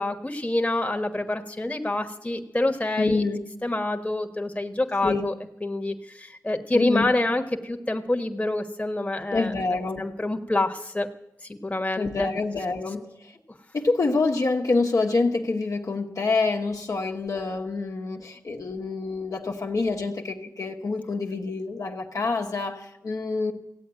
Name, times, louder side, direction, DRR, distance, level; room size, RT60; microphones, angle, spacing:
voice 1, 0.0-3.2 3.6-5.3 5.6-9.5 10.0-11.1 11.6-12.3, left 2 dB, 20° left, 4 dB, 1.3 m, -27 dB
voice 2, 3.0-3.4 5.0-5.3 6.7-7.1 9.3-10.1 12.0-13.3 13.7-23.5, left 3 dB, 65° left, 1 dB, 1.4 m, -26 dB
16.0 x 8.5 x 9.0 m, 0.86 s
cardioid pair, 55°, 6 cm